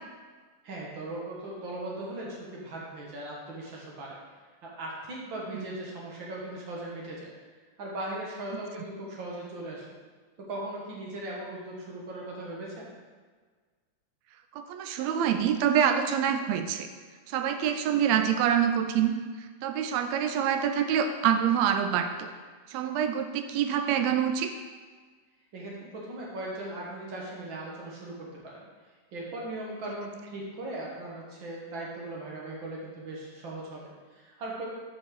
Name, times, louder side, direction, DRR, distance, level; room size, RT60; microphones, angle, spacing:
voice 1, 0.6-4.1 4.6-7.3 7.8-9.9 10.4-12.9 25.5-28.6 29.1-34.6, right 1 dB, 50° right, -3 dB, 1.7 m, -38 dB
voice 2, 14.5-16.9 17.3-22.3 22.7-24.5, right 8 dB, 80° right, 7 dB, 1.7 m, -26 dB
5.3 x 5.1 x 5.9 m, 1.5 s
omnidirectional pair, 3.4 m